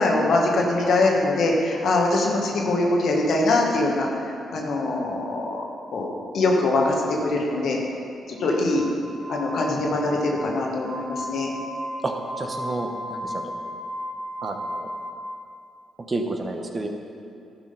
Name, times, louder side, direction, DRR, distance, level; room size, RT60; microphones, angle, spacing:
voice 1, 0.0-4.1 4.5-5.6 5.9-7.8 8.3-8.8 9.3-11.5, left 2 dB, 65° left, 0 dB, 1.4 m, -23 dB
Glass, 8.4-15.1, equal, 15° right, 1.4 m, -35 dB
voice 2, 12.0-13.5 14.4-14.9 16.1-16.9, right 2 dB, 35° right, 3 dB, 1.1 m, -30 dB
11.5 x 4.9 x 5.3 m, 2.5 s
hypercardioid pair, 50°, 0 cm